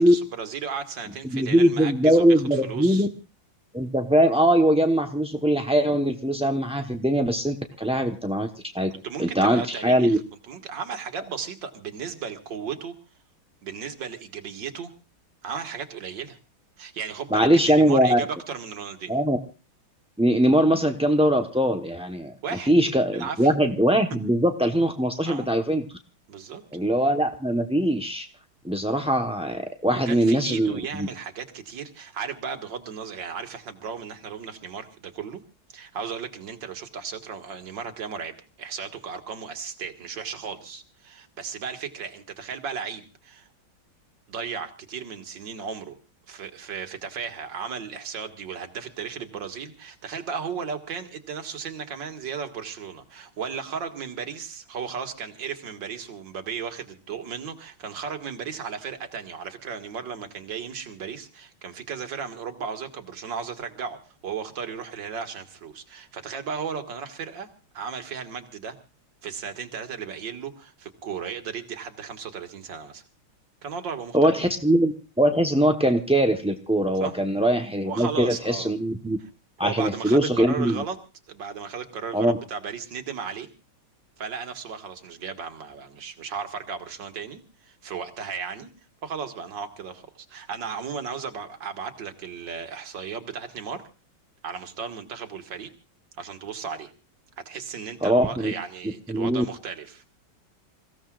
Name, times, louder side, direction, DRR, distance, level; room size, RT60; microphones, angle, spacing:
voice 1, 0.0-3.1 9.0-10.2 10.5-12.9 13.6-14.9 15.4-16.4 16.8-19.2 22.4-22.7 23.1-23.5 25.2-25.5 26.3-26.6 29.9-35.4 35.7-43.5 44.3-46.0 46.3-67.5 67.7-68.8 69.2-73.0 73.6-74.3 77.0-77.2 77.8-78.7 79.6-81.0 81.3-83.5 84.2-88.7 89.0-93.8 94.4-95.7 96.2-96.9 97.5-100.0, right 6 dB, 65° right, 6 dB, 2.3 m, -35 dB
voice 2, 1.2-3.1 3.7-8.5 8.7-8.9 9.2-10.2 17.3-18.2 19.1-19.4 20.2-22.3 22.7-25.8 26.7-28.3 28.6-31.1 74.1-79.2 79.6-80.8 82.1-82.4 98.0-98.5 99.1-99.4, right 1 dB, 10° right, 4 dB, 0.4 m, -21 dB
28.5 x 16.0 x 2.4 m, 0.33 s
omnidirectional pair, 2.2 m